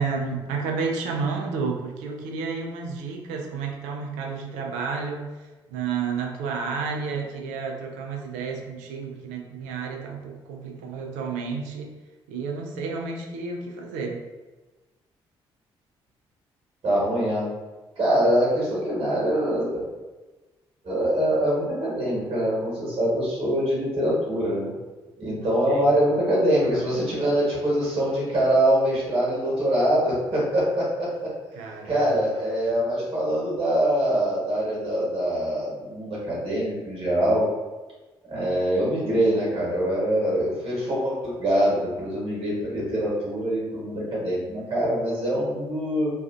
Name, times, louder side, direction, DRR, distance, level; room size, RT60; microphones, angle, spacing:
voice 1, 0.0-5.3 5.7-11.9 12.3-14.2 25.4-25.8 31.6-32.0, right 5 dB, 70° right, 1 dB, 0.4 m, -31 dB
voice 2, 16.8-17.5 18.0-19.8 20.8-24.7 25.2-31.3 31.8-37.4 38.3-46.1, right 1 dB, 45° right, -6 dB, 1.2 m, -24 dB
2.4 x 2.3 x 2.3 m, 1.2 s
figure-of-eight pair, 40°, 13 cm